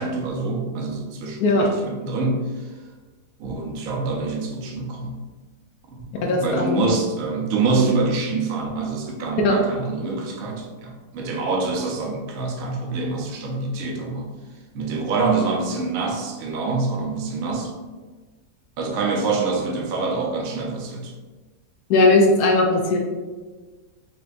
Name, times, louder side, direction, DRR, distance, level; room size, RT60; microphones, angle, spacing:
voice 1, 0.0-2.7 3.4-5.2 5.9-14.3 14.7-17.7 18.8-21.1, right 3 dB, 65° right, 0 dB, 1.1 m, -26 dB
voice 2, 6.2-6.8 9.4-9.5 21.9-23.0, left 2 dB, 75° left, 1 dB, 1.1 m, -18 dB
4.7 x 3.2 x 2.5 m, 1.3 s
omnidirectional pair, 1.8 m